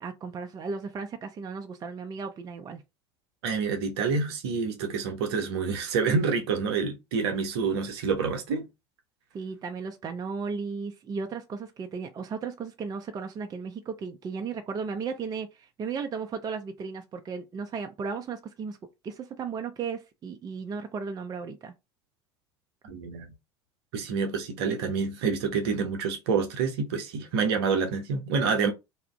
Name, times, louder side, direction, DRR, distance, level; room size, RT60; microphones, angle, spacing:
voice 1, 0.0-2.8 9.3-18.8 19.0-21.7, right 5 dB, 25° right, 0.4 m, -35 dB
voice 2, 3.4-8.7 22.8-23.3 23.9-28.7, right 5 dB, 65° right, 0.7 m, -27 dB
2.7 x 2.4 x 2.2 m
figure-of-eight pair, 70°, 14 cm